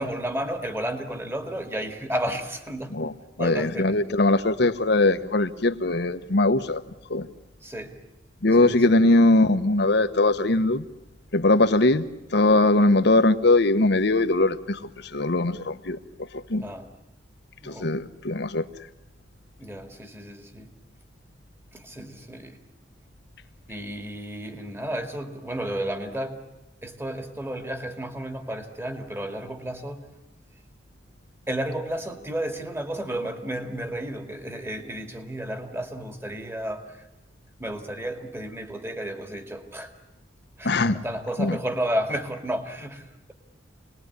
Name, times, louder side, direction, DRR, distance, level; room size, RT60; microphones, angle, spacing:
voice 1, 0.0-3.0 3.4-4.0 7.6-8.0 8.6-8.8 16.6-16.9 17.6-17.9 19.6-20.8 21.7-22.6 23.7-26.5 26.8-30.1 31.5-37.0 37.6-39.9 40.6-43.1, right 1 dB, 15° right, 2.2 m, -32 dB
voice 2, 2.9-6.8 7.1-7.3 8.4-10.8 11.3-16.7 17.6-18.7 40.6-41.0 41.4-41.6, left 2 dB, 65° left, 1.1 m, -21 dB
28.0 x 20.5 x 9.6 m
head